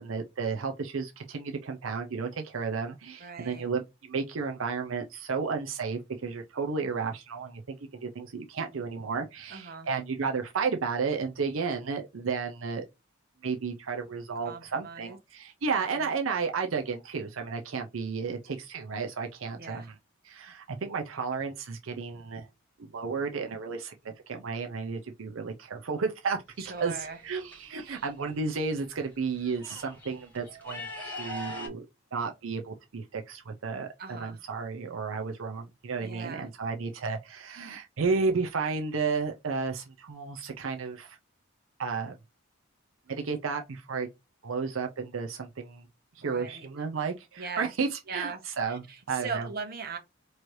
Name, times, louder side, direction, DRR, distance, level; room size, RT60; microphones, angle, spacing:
voice 1, 0.0-7.6 7.9-12.8 13.4-20.0 20.2-22.5 22.8-26.4 26.8-41.2 41.8-42.2 43.1-44.1 44.4-45.9 46.1-49.5, right 5 dB, 75° right, 0.6 m, -33 dB
voice 2, 3.2-3.6 9.5-9.9 14.4-15.2 16.0-16.1 19.5-19.9 26.6-27.2 27.8-28.1 34.0-34.4 36.0-36.5 46.2-46.7 47.4-47.7 48.1-50.0, right 5 dB, 50° right, 1.1 m, -39 dB
sound 1, 26.5-27.6 28.7-28.8 29.1-31.7, left 1 dB, 10° left, 2.5 m, -41 dB
4.6 x 3.1 x 2.6 m
head